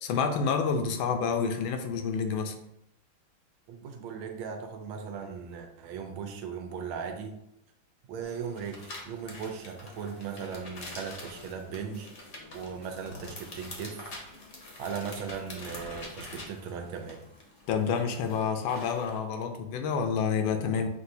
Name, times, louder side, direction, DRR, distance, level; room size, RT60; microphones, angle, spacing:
voice 1, 0.0-2.6 17.7-20.9, left 6 dB, 80° left, 6 dB, 1.3 m, -28 dB
voice 2, 3.7-7.4 8.1-12.1 12.5-14.1 14.8-17.2, right 6 dB, 85° right, 4 dB, 1.5 m, -38 dB
sound 1, 8.2-19.2, left 2 dB, 50° left, 0.9 m, -45 dB
6.1 x 2.6 x 2.7 m, 0.80 s
omnidirectional pair, 2.2 m